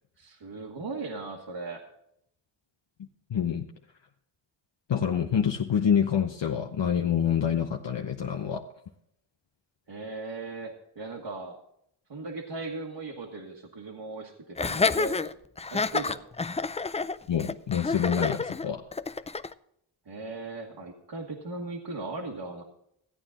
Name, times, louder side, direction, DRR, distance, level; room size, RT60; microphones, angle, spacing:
voice 1, 0.2-1.8 9.9-11.6 12.1-15.3 15.7-16.2 20.0-22.6, right 3 dB, 60° right, -2 dB, 1.6 m, -38 dB
voice 2, 3.3-3.7 4.9-8.6 17.3-18.8, left 8 dB, 65° left, 3 dB, 0.9 m, -26 dB
Laughter, 14.6-19.5, left 4 dB, 15° left, 0.3 m, -29 dB
14.5 x 9.1 x 3.8 m, 0.74 s
cardioid pair, 55°, 48 cm